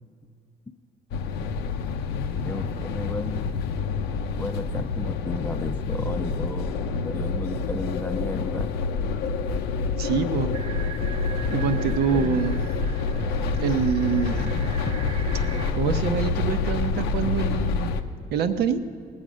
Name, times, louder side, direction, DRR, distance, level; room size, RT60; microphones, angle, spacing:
sound 1, 1.1-18.0, left 4 dB, 90° left, 0.7 m, -27 dB
voice 1, 2.4-3.6 4.4-8.7 12.1-12.5, left 2 dB, 15° left, 9 dB, 0.5 m, -34 dB
voice 2, 10.0-10.5 11.5-12.6 13.6-14.8 15.7-17.9 18.3-18.8, right 7 dB, 75° right, 8 dB, 0.9 m, -25 dB
sound 2, 10.5-15.7, right 7 dB, 30° right, 0.9 m, -42 dB
19.5 x 8.0 x 6.3 m, 2.2 s
cardioid pair, 110°, 17 cm